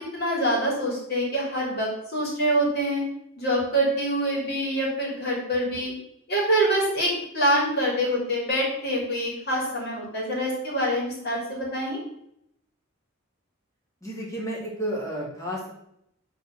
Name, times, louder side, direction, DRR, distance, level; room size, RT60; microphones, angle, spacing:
voice 1, 0.1-3.0 3.4-5.9 6.3-12.0, right 1 dB, 50° left, -3 dB, 3.3 m, -25 dB
voice 2, 14.0-15.7, equal, 15° left, -4 dB, 2.7 m, -31 dB
6.8 x 4.6 x 6.5 m, 0.76 s
head